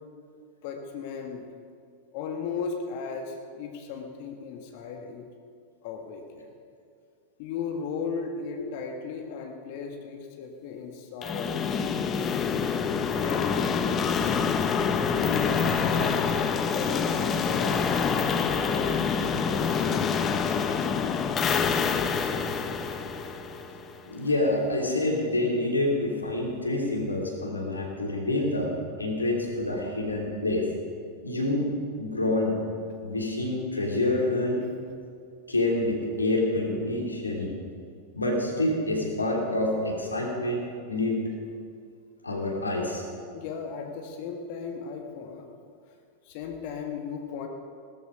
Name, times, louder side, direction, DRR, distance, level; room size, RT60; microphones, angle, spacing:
voice 1, 0.6-1.4 2.1-5.3 5.8-6.6 7.4-12.0 13.0-13.6 15.2-16.2 16.6-18.9 19.4-21.7 43.3-45.5 46.2-47.5, left 5 dB, 45° left, 3 dB, 1.6 m, -37 dB
sound 1, 11.2-24.1, left 6 dB, 25° left, 1.0 m, -26 dB
voice 2, 24.1-28.7 29.0-30.7 31.2-31.7 32.0-32.6 33.0-34.6 35.5-37.5 38.1-41.3 42.2-43.0, left 2 dB, 80° left, -1 dB, 3.2 m, -27 dB
17.5 x 13.5 x 5.3 m, 2.3 s
figure-of-eight pair, 90°, 0 cm